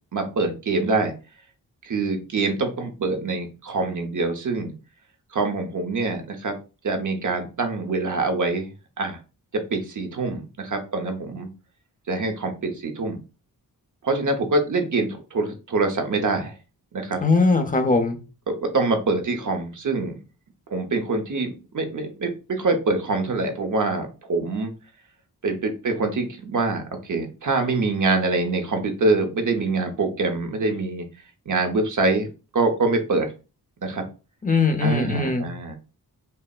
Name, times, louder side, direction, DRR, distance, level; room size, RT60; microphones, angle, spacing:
voice 1, 0.1-1.1 1.8-4.7 5.3-6.6 6.8-8.7 9.0-9.2 9.5-11.5 12.1-13.2 14.0-16.5 16.9-17.2 18.5-20.2 20.7-24.7 25.4-31.1 31.5-33.3 33.8-34.0 34.8-35.8, right 3 dB, 50° right, 5 dB, 0.8 m, -25 dB
voice 2, 17.2-18.2 34.4-35.5, left 3 dB, 20° left, 5 dB, 0.7 m, -20 dB
5.4 x 2.1 x 2.3 m, 0.32 s
wide cardioid pair, 85°, 38 cm